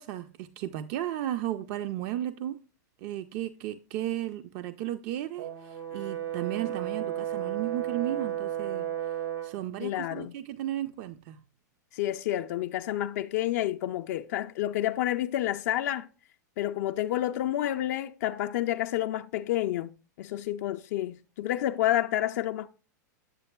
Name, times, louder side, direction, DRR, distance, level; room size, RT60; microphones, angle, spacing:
voice 1, 0.0-2.6 3.0-9.2 9.4-11.4, right 12 dB, 50° right, 0.4 m, -34 dB
Brass instrument, 5.4-9.6, right 11 dB, 80° right, 1.3 m, -33 dB
voice 2, 9.8-10.3 11.9-16.1 16.6-19.9 20.2-22.7, left 13 dB, 60° left, 0.4 m, -29 dB
8.0 x 7.6 x 2.2 m
hypercardioid pair, 110°, 10 cm